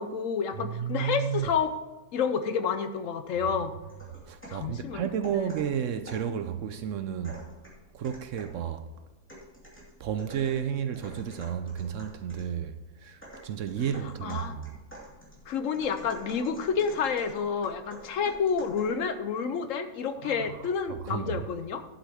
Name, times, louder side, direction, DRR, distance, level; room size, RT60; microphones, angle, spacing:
voice 1, 0.0-1.7 2.1-3.7 4.5-5.1 5.3-5.5 14.2-14.6 15.5-21.9, left 6 dB, 65° left, 1.0 m, -29 dB
voice 2, 0.6-1.6 4.3-7.4 7.9-8.9 10.0-14.8 20.2-20.6 21.0-21.4, right 8 dB, 65° right, 0.8 m, -32 dB
sound 1, 3.9-4.7 5.2-6.4 7.2-8.6 9.3-12.5 13.2-19.0, equal, 10° left, 2.4 m, -48 dB
11.5 x 7.7 x 3.5 m
omnidirectional pair, 1.6 m